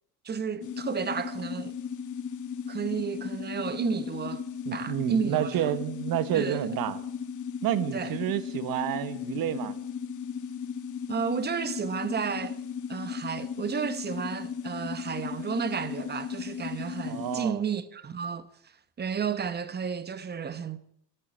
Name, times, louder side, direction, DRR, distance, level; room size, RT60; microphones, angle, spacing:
voice 1, 0.2-1.7 2.7-4.4 4.7-5.5 6.3-6.7 7.9-8.1 11.1-12.6 12.9-18.5 19.0-20.8, right 6 dB, 20° right, 1.0 m, -32 dB
sound 1, 0.6-17.4, left 7 dB, 40° left, 1.7 m, -36 dB
voice 2, 4.6-7.0 7.6-9.8 17.0-17.6, right 12 dB, 50° right, 1.3 m, -29 dB
13.5 x 12.5 x 7.4 m
cardioid pair, 125°, 45 cm